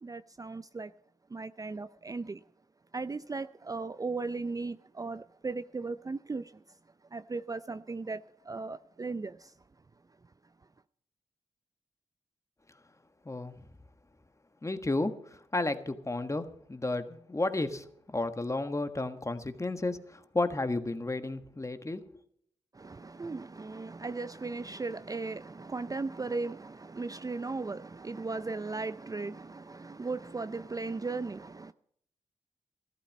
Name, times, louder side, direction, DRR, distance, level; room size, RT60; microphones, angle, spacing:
voice 1, 0.0-0.9 1.3-2.4 2.9-6.8 7.1-9.5 22.7-31.7, right 3 dB, 25° right, 0.5 m, -37 dB
voice 2, 13.2-13.5 14.6-22.0, left 2 dB, 25° left, 1.5 m, -32 dB
14.5 x 12.5 x 5.3 m
cardioid pair, 50°, 13 cm